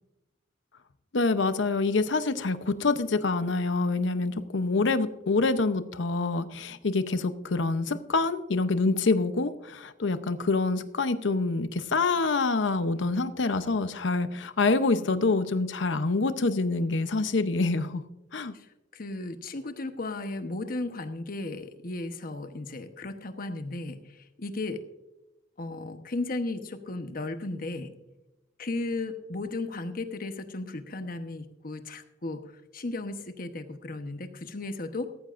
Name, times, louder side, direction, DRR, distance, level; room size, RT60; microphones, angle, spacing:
voice 1, 1.1-18.0 18.3-18.5, left 3 dB, 70° left, 12 dB, 0.7 m, -26 dB
voice 2, 18.5-24.8 25.6-27.9 28.6-32.4 32.7-35.1, left 2 dB, 50° left, 8 dB, 1.0 m, -35 dB
17.0 x 14.0 x 2.5 m, 0.99 s
head